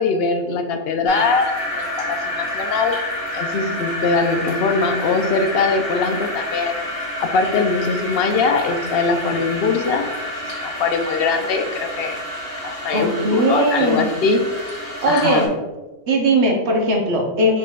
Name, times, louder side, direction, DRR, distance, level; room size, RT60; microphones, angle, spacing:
voice 1, 0.0-3.0 3.3-6.8 7.2-10.1 10.6-12.2 12.6-14.4 15.1-15.4, left 4 dB, 65° left, 5 dB, 0.7 m, -21 dB
sound 1, 1.1-15.5, equal, 30° left, 1.1 m, -29 dB
voice 2, 12.9-14.0 15.0-15.5 16.1-17.6, right 1 dB, 65° right, 0 dB, 1.1 m, -18 dB
4.8 x 4.5 x 2.3 m, 1.1 s
omnidirectional pair, 1.2 m